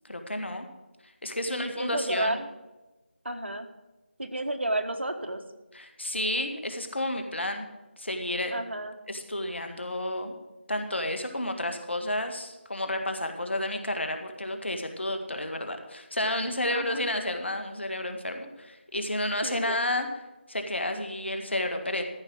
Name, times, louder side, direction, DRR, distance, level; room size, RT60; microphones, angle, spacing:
voice 1, 0.0-0.7 1.2-2.4 5.7-7.7 8.0-8.5 9.1-10.4 10.7-20.1 20.5-22.0, left 1 dB, 70° left, 6 dB, 1.9 m, -31 dB
voice 2, 1.5-2.5 3.2-3.7 4.2-5.4 8.5-9.0 16.7-17.0 19.4-19.8, right 1 dB, 70° right, 6 dB, 1.4 m, -31 dB
14.0 x 5.7 x 7.7 m, 1.1 s
figure-of-eight pair, 165°, 6 cm